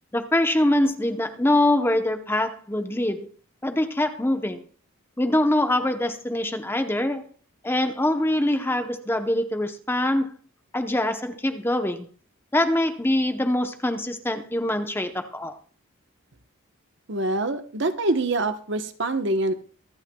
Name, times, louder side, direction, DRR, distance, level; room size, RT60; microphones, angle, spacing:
voice 1, 0.1-3.3 3.6-4.6 5.2-7.2 7.6-10.3 10.7-12.1 12.5-15.6, left 1 dB, 10° left, 7 dB, 0.8 m, -24 dB
voice 2, 17.1-19.5, right 2 dB, 55° right, 9 dB, 1.0 m, -25 dB
24.5 x 9.0 x 2.3 m, 0.39 s
head